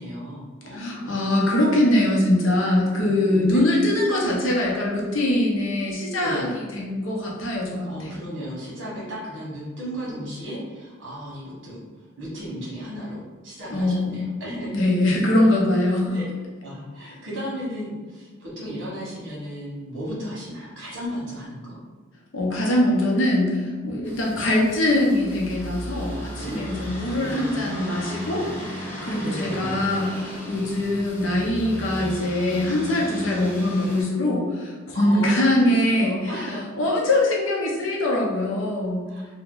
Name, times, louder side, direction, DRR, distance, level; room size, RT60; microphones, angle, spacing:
voice 1, 0.0-1.1 3.0-3.6 6.2-6.5 7.8-11.8 12.2-14.8 16.0-16.3 16.6-21.8 26.4-27.7 29.2-29.8 34.9-36.6 39.1-39.3, equal, 65° right, -6 dB, 1.2 m, -35 dB
voice 2, 0.7-8.1 13.7-14.3 14.7-16.2 22.3-36.5 36.8-39.1, left 1 dB, 75° left, -2 dB, 0.7 m, -23 dB
sound 1, 24.0-34.0, equal, 10° left, 0.7 m, -35 dB
2.8 x 2.2 x 3.7 m, 1.4 s
head